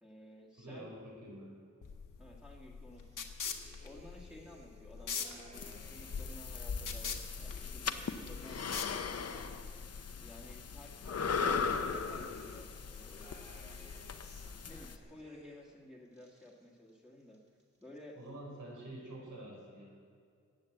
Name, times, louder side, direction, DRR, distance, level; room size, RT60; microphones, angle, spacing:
voice 1, 0.0-0.9 2.2-3.3 3.8-9.3 10.2-13.3 14.7-17.4 17.8-18.2, left 1 dB, 5° right, -4 dB, 1.8 m, -54 dB
voice 2, 0.6-1.5 18.2-19.9, right 1 dB, 85° right, -1 dB, 5.0 m, -47 dB
sound 1, 1.8-9.5, left 6 dB, 80° left, 1.4 m, -43 dB
sound 2, 2.9-6.6 7.0-10.5 10.9-15.8 16.0-16.9 17.2-18.0, equal, 20° right, 2.6 m, -59 dB
sound 3, 5.5-15.0, left 5 dB, 50° left, 0.8 m, -38 dB
19.0 x 8.6 x 7.9 m, 2.3 s
wide cardioid pair, 150°, 31 cm